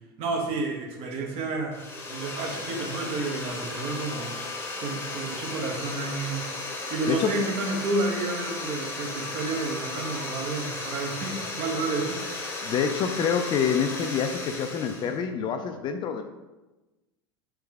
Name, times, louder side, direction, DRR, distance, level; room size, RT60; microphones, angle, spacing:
voice 1, 0.2-1.8 2.1-6.5 6.9-12.5, right 3 dB, 50° right, 1 dB, 0.9 m, -31 dB
sound 1, 1.7-15.2, left 2 dB, 15° left, 0.8 m, -35 dB
voice 2, 12.6-16.2, left 7 dB, 35° left, 7 dB, 0.4 m, -27 dB
3.5 x 3.2 x 3.4 m, 1.1 s
hypercardioid pair, 85°, 14 cm